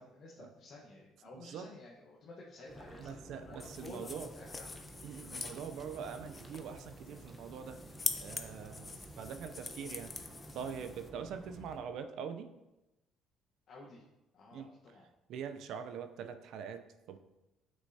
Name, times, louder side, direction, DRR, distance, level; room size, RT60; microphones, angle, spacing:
voice 1, 0.0-4.8 8.7-8.9 13.7-14.1 14.3-15.0, left 2 dB, 55° left, -3 dB, 1.2 m, -52 dB
voice 2, 1.3-1.7 3.0-4.3 5.0-7.8 8.2-10.1 10.5-12.5 14.5-14.7 15.3-17.2, right 7 dB, 70° right, 9 dB, 0.5 m, -43 dB
sound 1, 2.7-11.8, right 1 dB, 20° right, 1.0 m, -52 dB
sound 2, 3.6-11.1, left 4 dB, 30° left, 0.7 m, -44 dB
8.1 x 6.2 x 2.8 m, 0.98 s
supercardioid pair, 80°, 0 cm